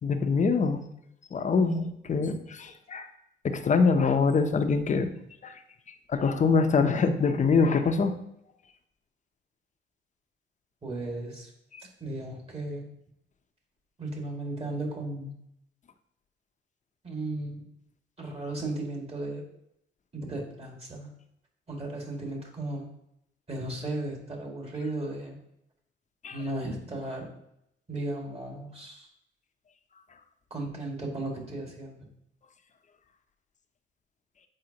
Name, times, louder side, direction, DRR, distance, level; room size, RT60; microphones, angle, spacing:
voice 1, 0.0-0.8 1.3-3.1 3.4-5.1 5.4-5.6 6.1-8.2 11.7-11.8 26.2-26.4, left 4 dB, 40° left, 8 dB, 0.7 m, -24 dB
voice 2, 10.8-11.5 12.0-12.8 14.0-15.3 17.0-17.6 18.2-19.4 20.1-21.1 21.7-22.9 23.5-25.4 26.3-27.2 27.9-29.1 30.5-32.1, right 2 dB, 30° right, -1 dB, 2.1 m, -35 dB
7.6 x 4.8 x 2.9 m, 0.78 s
cardioid pair, 90°, 20 cm